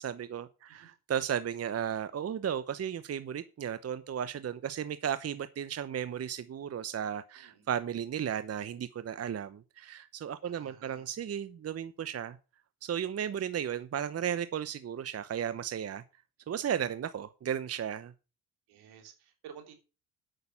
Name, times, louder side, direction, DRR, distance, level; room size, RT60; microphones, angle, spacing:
voice 1, 0.0-12.4 12.8-16.0 16.5-18.1, right 9 dB, 40° right, 0.9 m, -35 dB
voice 2, 7.3-7.7 10.4-11.1 18.7-19.8, right 8 dB, 75° right, 3.2 m, -53 dB
8.9 x 6.6 x 7.0 m
supercardioid pair, 75°, 38 cm